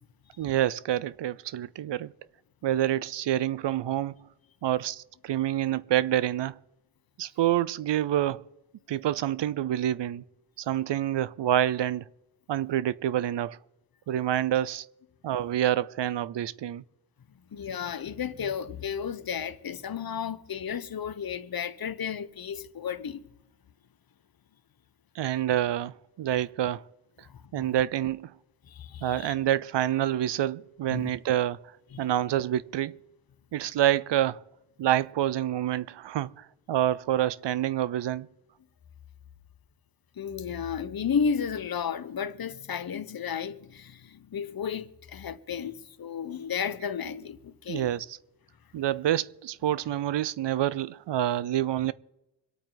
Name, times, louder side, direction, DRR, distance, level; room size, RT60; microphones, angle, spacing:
voice 1, 0.4-2.1 2.6-4.1 4.6-6.6 7.2-8.4 8.9-10.2 10.6-12.0 12.5-13.6 14.1-14.9 15.2-16.8 25.2-26.8 27.5-28.3 29.0-31.6 32.0-33.0 33.5-34.4 34.8-38.3 47.7-48.1 48.7-51.9, right 12 dB, 80° right, 0.6 m, -27 dB
voice 2, 17.5-23.3 27.3-27.7 28.7-29.4 30.9-31.1 31.9-32.0 40.2-47.9, left 7 dB, 55° left, 1.0 m, -33 dB
26.0 x 8.9 x 3.9 m
cardioid pair, 75°, 42 cm